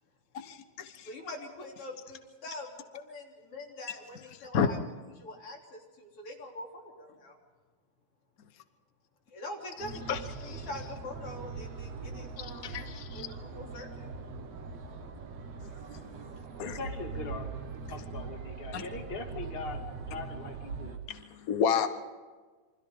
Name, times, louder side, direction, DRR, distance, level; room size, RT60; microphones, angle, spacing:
voice 1, 0.3-1.1 4.5-4.7 10.1-10.2 12.4-13.3 16.6-16.8 18.7-18.8 21.1-21.9, left 7 dB, 90° left, 8 dB, 0.7 m, -30 dB
voice 2, 1.0-4.8 5.2-7.4 9.3-12.8 13.1-14.1, left 2 dB, 45° left, 0 dB, 4.2 m, -44 dB
sound 1, 9.8-21.0, right 4 dB, 60° right, 2.5 m, -41 dB
voice 3, 16.6-19.8 20.1-21.0, left 4 dB, 20° left, 2 dB, 2.0 m, -41 dB
28.0 x 24.5 x 3.8 m, 1.4 s
omnidirectional pair, 3.5 m